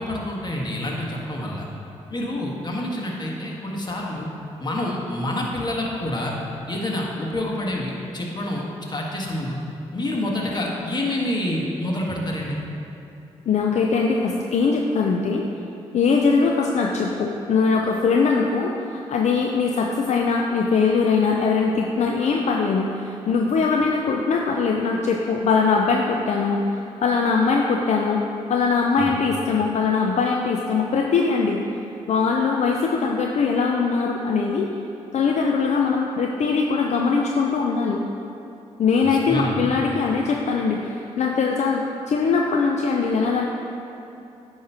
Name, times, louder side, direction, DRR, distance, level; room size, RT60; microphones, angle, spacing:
voice 1, 0.0-1.7 2.1-4.3 4.6-6.3 6.7-9.6 9.9-12.6 23.7-23.8 29.0-29.1 39.0-39.6, left 1 dB, 35° left, -2 dB, 1.6 m, -27 dB
voice 2, 13.5-15.4 15.9-28.2 28.5-31.6 32.1-34.7 35.1-38.0 38.8-43.5, left 4 dB, 60° left, 0 dB, 0.5 m, -21 dB
9.4 x 3.2 x 5.6 m, 2.8 s
supercardioid pair, 45°, 13 cm